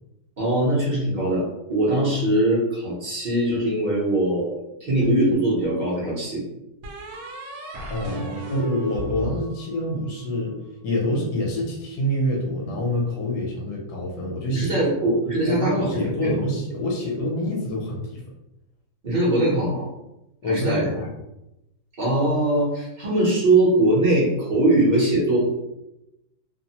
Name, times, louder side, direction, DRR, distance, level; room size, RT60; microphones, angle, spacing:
voice 1, 0.4-6.4 14.5-16.3 19.0-19.9 20.4-20.9 22.0-25.5, right 1 dB, 45° right, -6 dB, 0.6 m, -21 dB
sound 1, 5.0-5.9 6.8-10.2, right 1 dB, 70° right, 0.9 m, -36 dB
voice 2, 7.9-10.5 10.8-14.7 15.1-15.2 15.5-18.2 20.4-21.1, left 1 dB, 70° left, -1 dB, 1.2 m, -26 dB
3.0 x 2.0 x 2.8 m, 0.90 s
omnidirectional pair, 1.9 m